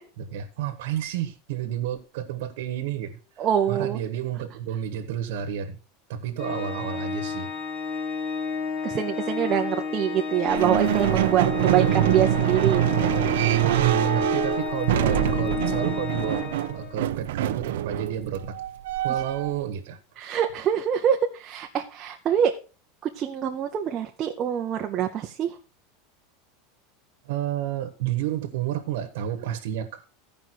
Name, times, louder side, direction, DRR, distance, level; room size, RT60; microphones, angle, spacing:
voice 1, 0.2-5.8 6.1-7.5 7.9-8.0 11.4-11.9 13.6-16.4 16.7-18.6 19.0-20.3 27.2-30.0, right 10 dB, 65° right, 7 dB, 1.3 m, -30 dB
voice 2, 3.4-4.0 8.8-12.8 20.2-22.5 23.0-25.6, right 9 dB, 25° right, 3 dB, 0.7 m, -25 dB
Organ, 6.4-17.1, left 5 dB, 30° left, 1.2 m, -31 dB
sound 1, 10.5-19.6, right 13 dB, 80° right, 0.6 m, -25 dB
15.5 x 5.3 x 4.6 m, 0.35 s
supercardioid pair, 175°, 0 cm